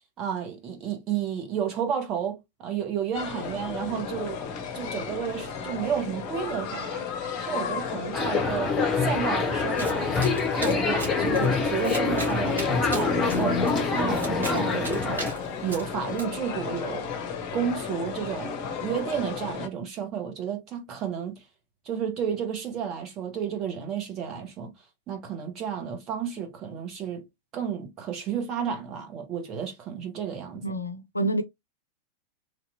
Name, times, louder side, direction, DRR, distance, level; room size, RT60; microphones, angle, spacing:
voice 1, 0.2-4.4 4.7-7.1 7.4-13.6 13.9-15.2 15.6-17.1 17.5-21.4 21.8-24.7 25.1-27.2 27.5-30.6, right 8 dB, 35° right, 1.2 m, -32 dB
sound 1, 3.1-19.7, left 6 dB, 40° left, 0.7 m, -34 dB
sound 2, 8.1-15.3, left 4 dB, 20° left, 0.9 m, -25 dB
Domestic sounds home sounds, 9.8-16.2, right 2 dB, 70° right, 1.7 m, -39 dB
voice 2, 30.6-31.4, right 1 dB, 80° left, 0.4 m, -27 dB
3.2 x 2.8 x 2.6 m
figure-of-eight pair, 90°, 0 cm